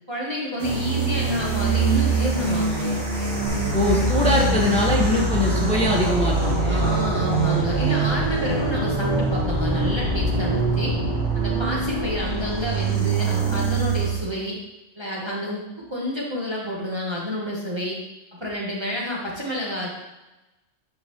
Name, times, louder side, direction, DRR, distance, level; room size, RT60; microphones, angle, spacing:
voice 1, 0.1-3.0 6.6-10.9 11.3-14.6 15.0-18.0 18.3-19.9, left 1 dB, 20° right, -4 dB, 1.2 m, -29 dB
sound 1, 0.6-14.2, right 3 dB, 65° right, 2.7 m, -24 dB
sound 2, 3.5-11.1, right 1 dB, 45° right, 1.8 m, -29 dB
voice 2, 3.7-6.9, left 1 dB, 5° left, -3 dB, 1.1 m, -22 dB
9.4 x 5.3 x 3.1 m, 1.0 s
omnidirectional pair, 1.3 m